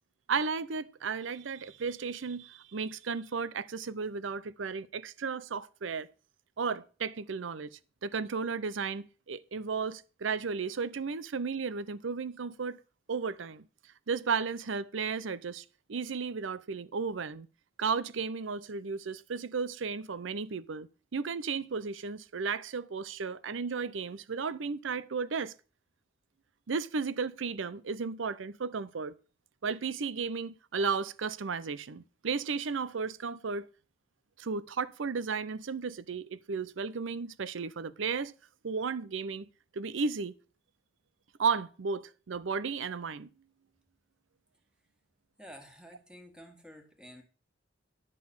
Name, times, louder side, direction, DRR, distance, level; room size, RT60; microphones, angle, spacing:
voice 1, 0.3-6.1 6.6-12.8 13.1-13.6 14.1-17.5 17.8-25.5 26.7-29.1 29.6-33.7 34.4-38.3 38.6-39.5 39.7-40.3 41.4-43.3, right 5 dB, 80° right, 0.6 m, -34 dB
voice 2, 45.4-47.2, equal, 5° right, 1.8 m, -51 dB
10.5 x 4.1 x 7.1 m
head